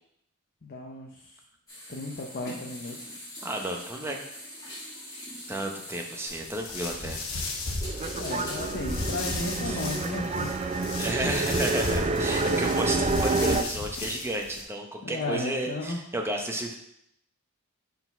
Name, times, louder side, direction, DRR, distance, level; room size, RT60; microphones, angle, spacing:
voice 1, 0.6-1.4 1.9-3.0 8.2-10.6 15.0-16.0, left 2 dB, 45° left, 0 dB, 0.7 m, -35 dB
sound 1, 1.7-9.9, left 1 dB, 15° left, 2.2 m, -44 dB
voice 2, 3.4-4.2 5.5-7.2 9.6-9.8 11.0-16.7, right 1 dB, 10° right, 1 dB, 0.7 m, -32 dB
sound 2, 6.3-14.6, left 2 dB, 65° left, 1.0 m, -35 dB
sound 3, 7.8-13.6, right 3 dB, 30° right, 0.4 m, -28 dB
4.8 x 4.0 x 5.4 m, 0.75 s
head